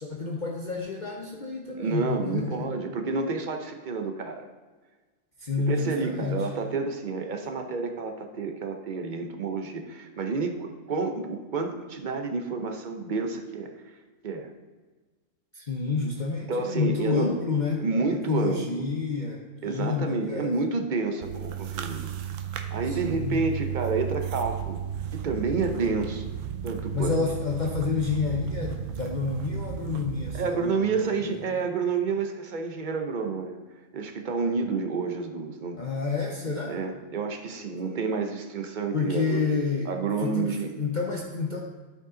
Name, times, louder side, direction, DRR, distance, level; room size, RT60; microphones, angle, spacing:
voice 1, 0.0-2.7 5.4-6.5 15.5-17.9 18.3-20.5 22.9-23.4 26.9-31.4 35.8-36.8 38.9-39.9 40.2-41.6, left 4 dB, 45° left, 0 dB, 0.8 m, -29 dB
voice 2, 1.7-4.5 5.6-13.7 14.2-14.5 16.5-17.3 17.8-18.8 19.6-22.1 22.7-24.8 25.1-26.3 26.6-27.2 30.3-33.6 33.9-35.8 36.5-39.4 39.9-40.7, right 4 dB, 45° right, 5 dB, 0.8 m, -29 dB
sound 1, 21.2-30.4, right 9 dB, 75° right, 1.0 m, -34 dB
11.5 x 5.2 x 3.8 m, 1.3 s
omnidirectional pair, 1.3 m